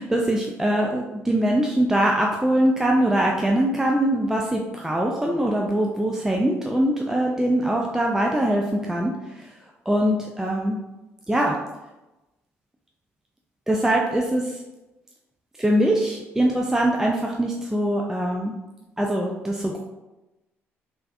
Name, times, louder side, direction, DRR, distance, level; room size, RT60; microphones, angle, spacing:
voice 1, 0.0-9.1 9.4-9.5 9.9-10.8 11.3-11.6 13.7-14.6 15.6-18.5 19.0-19.8, right 1 dB, 5° right, -1 dB, 0.4 m, -22 dB
3.4 x 3.2 x 2.5 m, 1.0 s
figure-of-eight pair, 45°, 7 cm